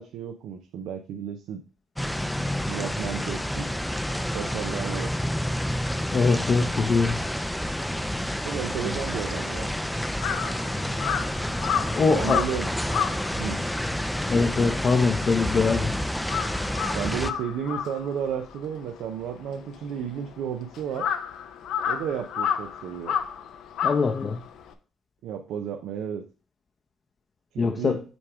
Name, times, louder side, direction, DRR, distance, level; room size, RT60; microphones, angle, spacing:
voice 1, 0.0-1.6 2.7-3.7 4.3-5.1 8.4-9.7 12.1-12.7 13.3-13.7 16.9-21.1 21.9-23.2 25.2-26.2 27.5-28.0, right 8 dB, 85° right, 0.5 m, -32 dB
sound 1, 2.0-17.3, equal, 5° left, 0.4 m, -29 dB
voice 2, 6.1-7.2 11.9-12.4 14.3-16.0 23.8-24.4 27.6-28.0, left 4 dB, 45° left, 0.7 m, -22 dB
Crow, 9.3-15.8 16.1-24.7, left 8 dB, 85° left, 0.6 m, -31 dB
6.1 x 3.5 x 4.8 m
cardioid pair, 90°, 0 cm